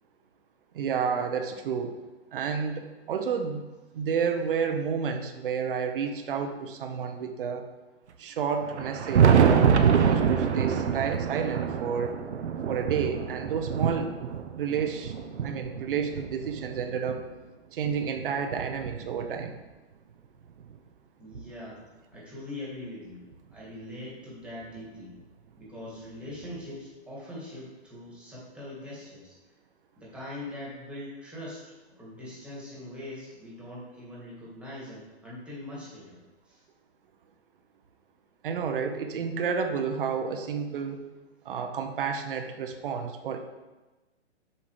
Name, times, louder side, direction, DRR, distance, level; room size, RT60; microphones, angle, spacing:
voice 1, 0.7-2.0 2.3-3.6 3.9-7.6 8.2-12.1 12.7-14.1 14.6-15.1 15.4-17.2 17.7-19.5 38.4-41.0 41.4-43.4, right 6 dB, 50° right, 6 dB, 1.1 m, -30 dB
Thunder, 8.6-17.2 17.8-19.6 20.7-20.8 21.4-21.5 23.3-23.4 24.8-24.9 26.5-26.6, right 7 dB, 80° right, 1.0 m, -26 dB
voice 2, 21.2-21.8 22.1-23.2 23.5-25.1 25.6-29.4 30.0-36.2 36.5-36.6, left 1 dB, 5° right, -6 dB, 2.2 m, -42 dB
7.3 x 5.9 x 4.9 m, 1.1 s
hypercardioid pair, 155°, 34 cm